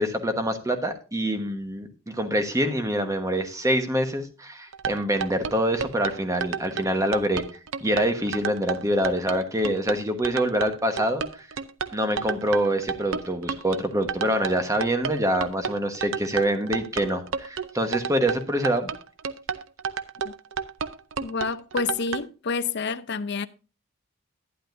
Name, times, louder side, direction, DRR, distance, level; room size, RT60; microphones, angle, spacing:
voice 1, 0.0-7.4 7.8-11.5 11.9-18.9, equal, 15° right, 1.2 m, -25 dB
sound 1, 4.7-22.2, right 6 dB, 65° right, 0.6 m, -31 dB
voice 2, 21.2-23.5, left 4 dB, 55° left, 0.6 m, -28 dB
12.0 x 10.0 x 2.6 m
head